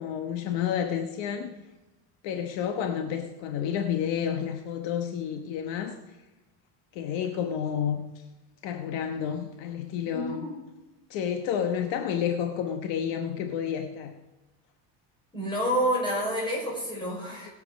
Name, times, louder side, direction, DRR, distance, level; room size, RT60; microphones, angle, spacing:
voice 1, 0.0-1.5 2.2-6.0 6.9-8.2 8.6-10.5 11.1-14.1, left 8 dB, 65° left, 5 dB, 1.2 m, -30 dB
voice 2, 10.1-10.5 15.3-17.5, equal, 10° left, -4 dB, 5.5 m, -29 dB
19.5 x 7.8 x 5.2 m, 1.1 s
cardioid pair, 155°, 47 cm